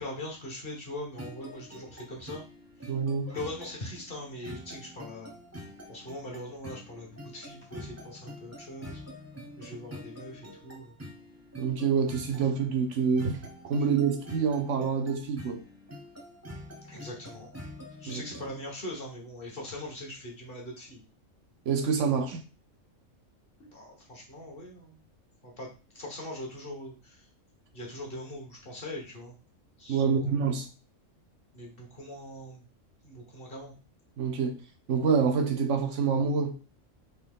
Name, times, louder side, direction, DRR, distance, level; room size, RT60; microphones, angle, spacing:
voice 1, 0.0-2.4 2.8-2.9 3.3-5.3 5.9-9.0 9.6-11.0 16.9-17.5 18.0-21.0 23.6-25.0 25.4-25.7 25.9-27.2 27.7-29.3 29.8-30.3 31.5-32.6 33.0-33.7, left 1 dB, 45° left, 1.4 m, -41 dB
sound 1, 1.2-18.6, equal, 15° right, 0.8 m, -46 dB
voice 2, 2.9-3.3 11.6-13.4 13.7-15.6 18.1-18.2 21.7-22.4 29.9-30.7 34.2-34.5 34.9-36.5, right 6 dB, 70° right, 0.9 m, -26 dB
4.2 x 2.9 x 3.6 m
omnidirectional pair, 1.4 m